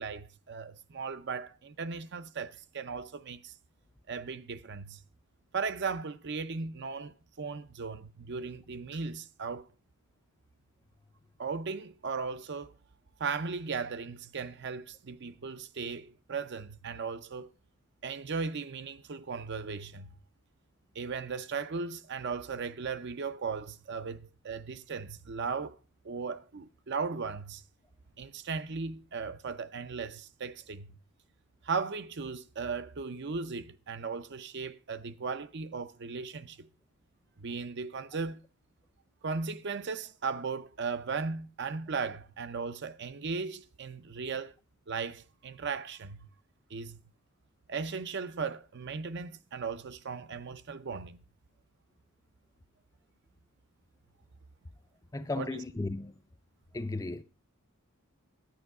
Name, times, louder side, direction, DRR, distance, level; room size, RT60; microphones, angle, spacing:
voice 1, 0.0-3.5 4.1-5.0 5.5-9.7 11.4-12.7 13.2-17.5 18.0-20.1 20.9-25.8 26.0-27.6 28.2-31.0 31.6-36.7 37.4-38.4 39.2-44.5 44.9-46.3 46.7-47.0 47.7-51.2 55.4-55.5, right 5 dB, 50° right, 0.6 m, -37 dB
voice 2, 55.1-56.1 56.7-57.2, left 2 dB, 15° left, 0.5 m, -35 dB
10.5 x 8.9 x 4.7 m
head